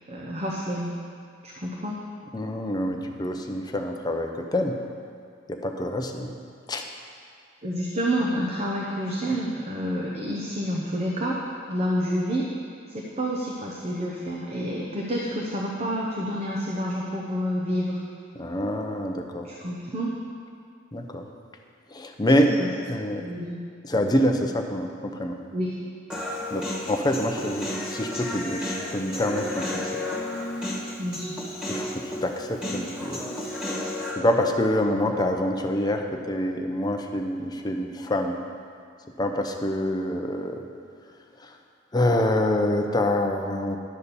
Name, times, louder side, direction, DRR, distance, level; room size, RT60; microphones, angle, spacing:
voice 1, 0.1-0.9 1.4-2.0 7.6-11.4 11.7-12.5 12.9-18.0 19.4-20.2 22.4-22.7 23.1-23.6 25.5-25.7 31.0-31.4, equal, 30° right, -3 dB, 0.8 m, -29 dB
voice 2, 2.3-4.7 5.5-6.3 6.7-6.8 18.4-19.5 20.9-21.3 21.9-22.5 22.9-23.2 23.8-25.4 26.5-29.9 31.7-33.3 34.2-38.4 39.2-40.6 41.4-41.5 41.9-43.8, left 1 dB, 20° left, 3 dB, 0.6 m, -26 dB
Human voice, 26.1-34.1, left 1 dB, 5° right, 1.6 m, -32 dB
11.0 x 4.3 x 6.8 m, 2.2 s
head